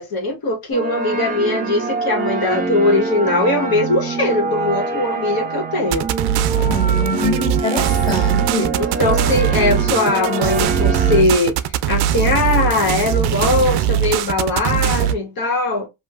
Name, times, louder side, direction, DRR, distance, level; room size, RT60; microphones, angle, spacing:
voice 1, 0.0-6.1 8.8-15.9, left 2 dB, 50° left, 1.3 m, -20 dB
sound 1, 0.7-11.2, right 3 dB, 20° right, 0.9 m, -24 dB
sound 2, 5.9-15.1, right 10 dB, 60° right, 0.5 m, -20 dB
voice 2, 6.7-8.8, left 1 dB, 10° left, 1.3 m, -24 dB
3.0 x 2.2 x 2.3 m
supercardioid pair, 75°, 46 cm